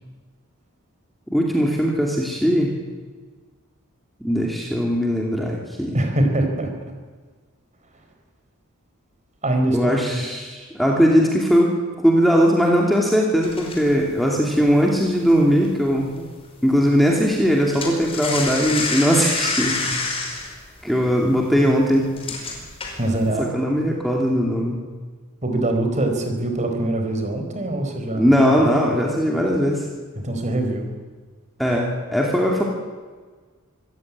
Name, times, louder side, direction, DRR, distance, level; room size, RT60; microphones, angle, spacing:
voice 1, 1.3-2.7 4.2-6.0 9.7-16.2 16.6-20.0 20.8-22.1 23.4-24.8 28.1-29.9 31.6-32.6, equal, ahead, -1 dB, 2.8 m, -19 dB
voice 2, 5.9-6.7 9.4-10.2 23.0-23.5 25.4-28.6 30.1-30.9, right 1 dB, 35° right, 5 dB, 4.5 m, -23 dB
sound 1, 13.4-16.2 16.4-16.7 17.0-23.3, left 3 dB, 25° left, 5.3 m, -29 dB
26.0 x 15.0 x 9.7 m, 1.4 s
head